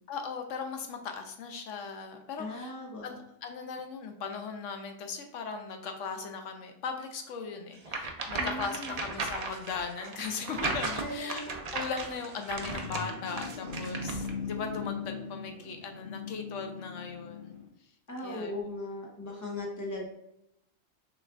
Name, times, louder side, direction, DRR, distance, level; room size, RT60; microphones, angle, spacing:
voice 1, 0.1-2.7 3.0-11.5 11.7-17.6 18.2-18.7, left 5 dB, 85° left, 5 dB, 1.0 m, -38 dB
voice 2, 2.4-3.2 8.4-9.0 11.0-11.5 18.1-20.1, left 2 dB, 15° left, -2 dB, 1.0 m, -38 dB
sound 1, 7.8-14.3, right 3 dB, 45° right, 0.5 m, -36 dB
sound 2, 12.1-17.7, left 5 dB, 45° left, 1.3 m, -39 dB
6.2 x 3.3 x 2.5 m, 0.78 s
omnidirectional pair, 1.2 m